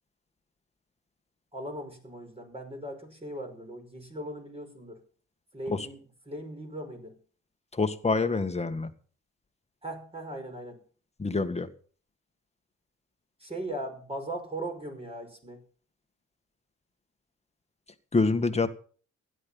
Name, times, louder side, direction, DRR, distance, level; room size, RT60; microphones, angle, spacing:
voice 1, 1.5-5.0 5.5-6.0 6.3-7.2 9.8-10.8 13.4-15.6, right 1 dB, 20° right, 3 dB, 5.6 m, -38 dB
voice 2, 7.7-8.9 11.2-11.7 18.1-18.7, left 3 dB, 20° left, 8 dB, 2.0 m, -26 dB
16.5 x 11.5 x 5.8 m, 0.43 s
cardioid pair, 90°, 30 cm